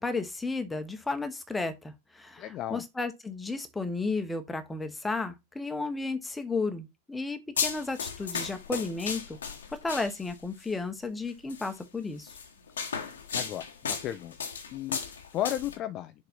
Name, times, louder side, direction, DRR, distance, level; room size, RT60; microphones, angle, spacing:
voice 1, 0.0-9.4 9.8-12.3, left 3 dB, 10° left, 1.2 m, -33 dB
voice 2, 2.4-2.9 13.3-14.4 14.7-16.3, left 12 dB, 35° left, 0.4 m, -35 dB
sound 1, 7.6-10.4 11.5-11.7 12.3-15.8, left 6 dB, 65° left, 1.2 m, -35 dB
6.7 x 4.0 x 4.1 m
figure-of-eight pair, 90°, 0 cm